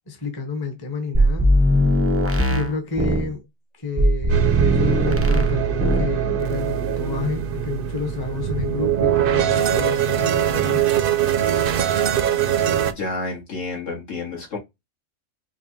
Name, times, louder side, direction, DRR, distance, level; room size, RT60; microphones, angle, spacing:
voice 1, 0.1-1.5 2.5-3.5 3.7-11.0, left 4 dB, 20° left, 0.7 m, -29 dB
sound 1, 1.1-3.3 4.0-5.5 5.8-6.1, equal, 15° right, 0.4 m, -19 dB
sound 2, 4.3-12.9, right 9 dB, 65° right, 0.5 m, -22 dB
voice 2, 12.9-14.6, left 3 dB, 70° left, 1.9 m, -30 dB
4.9 x 2.3 x 2.7 m
omnidirectional pair, 1.4 m